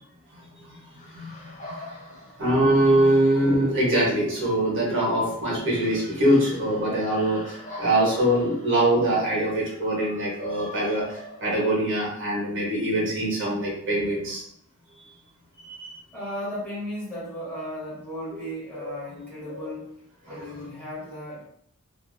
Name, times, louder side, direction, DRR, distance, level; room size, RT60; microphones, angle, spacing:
voice 1, 0.3-1.9 2.4-14.4 14.9-15.1 15.6-16.0 18.7-18.9 19.5-19.6 20.3-20.5, right 1 dB, 55° right, -5 dB, 1.2 m, -24 dB
sound 1, 0.9-12.0, left 1 dB, 35° left, 0.5 m, -43 dB
voice 2, 16.1-20.0 20.3-21.4, equal, 10° left, -9 dB, 1.1 m, -36 dB
2.7 x 2.6 x 2.6 m, 0.71 s
head